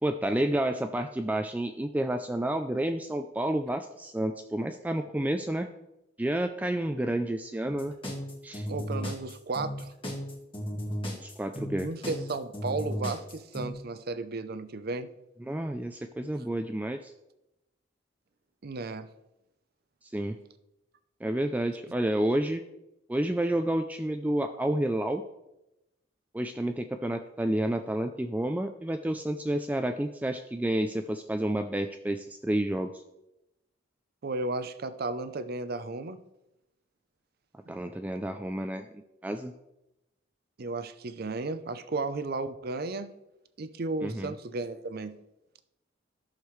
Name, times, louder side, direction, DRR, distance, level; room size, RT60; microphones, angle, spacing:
voice 1, 0.0-5.7 6.2-7.9 8.4-8.7 11.2-11.9 15.4-17.1 20.1-20.4 21.2-22.6 23.1-25.2 26.3-32.9 37.7-39.5 44.0-44.3, right 1 dB, 10° right, 6 dB, 0.3 m, -30 dB
sound 1, 7.6-13.7, equal, 30° left, 1.6 m, -35 dB
voice 2, 8.7-9.9 11.8-15.1 18.6-19.1 34.2-36.2 37.7-37.8 40.6-43.1 43.6-45.1, right 3 dB, 55° right, 12 dB, 0.6 m, -34 dB
13.5 x 6.6 x 3.2 m, 0.92 s
head